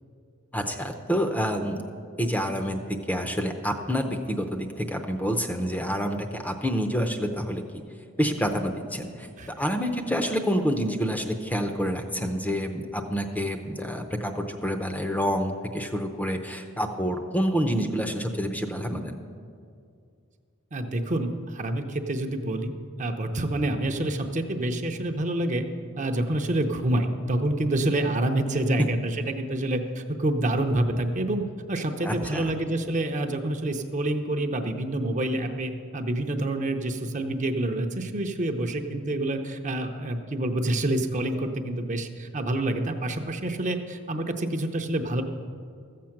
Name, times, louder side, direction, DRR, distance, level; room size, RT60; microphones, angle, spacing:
voice 1, 0.5-1.8 2.2-7.6 8.2-9.3 9.6-19.2 32.0-32.5, equal, 5° left, 5 dB, 0.6 m, -28 dB
voice 2, 20.7-22.7 23.0-25.7 26.0-45.2, right 1 dB, 35° right, 5 dB, 0.7 m, -27 dB
14.0 x 7.6 x 5.9 m, 2.3 s
head